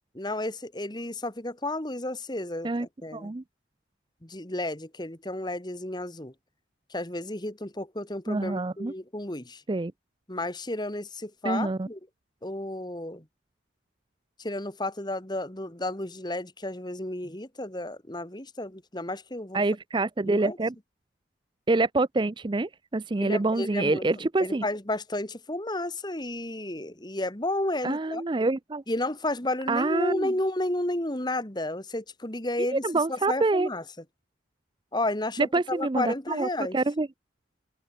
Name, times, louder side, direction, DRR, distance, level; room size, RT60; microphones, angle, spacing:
voice 1, 0.1-3.3 4.2-6.3 6.9-9.6 10.3-12.0 12.4-13.3 14.4-19.6 20.2-20.6 23.2-28.3 28.9-33.8 34.9-36.8, left 1 dB, 20° left, 2.0 m, -32 dB
voice 2, 3.1-3.4 8.3-8.9 9.7-9.9 11.4-11.9 19.5-20.7 21.7-24.6 27.8-28.8 29.7-30.3 32.7-33.7 35.4-36.5 36.7-37.1, right 2 dB, 25° right, 0.4 m, -26 dB
open air
head